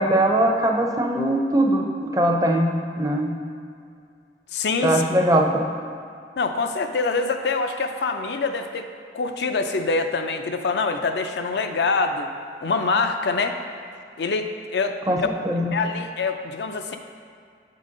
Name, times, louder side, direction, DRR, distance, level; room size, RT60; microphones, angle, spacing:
voice 1, 0.0-3.4 4.8-5.6 15.1-15.7, right 1 dB, 20° right, 1 dB, 0.4 m, -21 dB
voice 2, 4.5-5.0 6.4-8.9 9.1-12.3 12.6-13.6 14.2-15.3 15.7-17.0, left 4 dB, 75° left, 6 dB, 0.4 m, -25 dB
8.0 x 3.8 x 3.8 m, 2.3 s
head